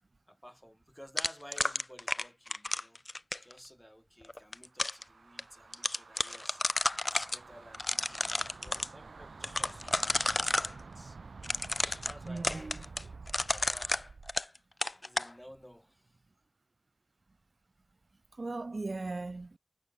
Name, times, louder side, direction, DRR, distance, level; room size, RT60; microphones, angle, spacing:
voice 1, 0.3-3.0 3.4-11.2 11.9-13.2 13.5-14.1 15.0-16.2, equal, 5° left, 7.8 m, -54 dB
sound 1, 1.2-3.5 4.3-5.0 5.4-5.5 5.7-7.4 7.7-8.9 9.4-10.7 11.4-14.6 14.8-15.3, left 2 dB, 35° left, 1.1 m, -31 dB
sound 2, 4.7-14.4, right 4 dB, 80° right, 1.8 m, -50 dB
voice 2, 12.2-12.8 18.4-19.6, right 3 dB, 50° right, 1.2 m, -38 dB
wide cardioid pair, 65°, 0 cm